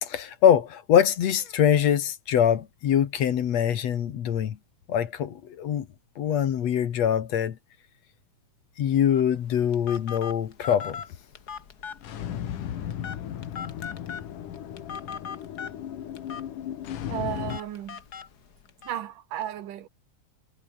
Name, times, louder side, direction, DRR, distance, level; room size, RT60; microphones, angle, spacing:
voice 1, 0.0-4.6 4.9-5.9 6.2-7.6 8.8-11.0, left 9 dB, 60° left, 2.5 m, -23 dB
Telephone, 9.1-18.9, left 7 dB, 40° left, 1.6 m, -41 dB
sound 1, 12.0-17.6, left 10 dB, 80° left, 3.4 m, -35 dB
voice 2, 17.1-18.0 18.8-19.9, right 11 dB, 85° right, 3.2 m, -34 dB
omnidirectional pair, 3.7 m